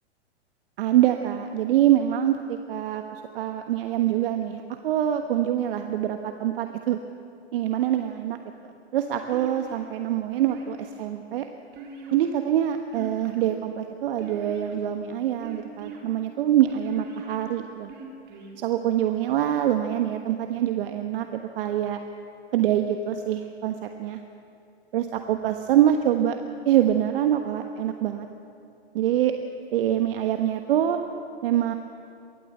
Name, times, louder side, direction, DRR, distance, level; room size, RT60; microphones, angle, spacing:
voice 1, 0.8-7.0 7.5-8.4 8.6-11.5 12.1-17.9 18.5-22.0 22.5-24.2 24.9-26.4 26.6-28.3 28.9-29.3 29.7-31.0 31.4-31.7, right 11 dB, 55° right, 6 dB, 1.4 m, -25 dB
sound 1, 9.3-9.9 10.5-11.0 11.7-12.5 12.9-13.5 14.2-14.9 15.4-16.0 16.7-17.3 17.9-18.5, right 4 dB, 35° right, 4.3 m, -41 dB
23.5 x 16.0 x 8.0 m, 2.6 s
hypercardioid pair, 115°, 33 cm